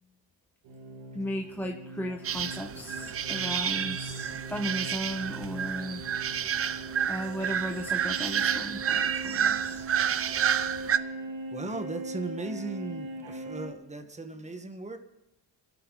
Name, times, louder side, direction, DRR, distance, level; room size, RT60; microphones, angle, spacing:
sound 1, 0.6-13.7, right 2 dB, 90° right, 2.5 m, -41 dB
voice 1, 1.1-6.0 7.1-9.9, equal, 5° left, 3 dB, 0.9 m, -36 dB
sound 2, 2.2-11.0, right 8 dB, 35° right, 0.6 m, -30 dB
voice 2, 11.0-15.0, right 3 dB, 15° right, 7 dB, 1.6 m, -38 dB
28.0 x 12.5 x 4.1 m, 0.95 s
cardioid pair, 110°, 42 cm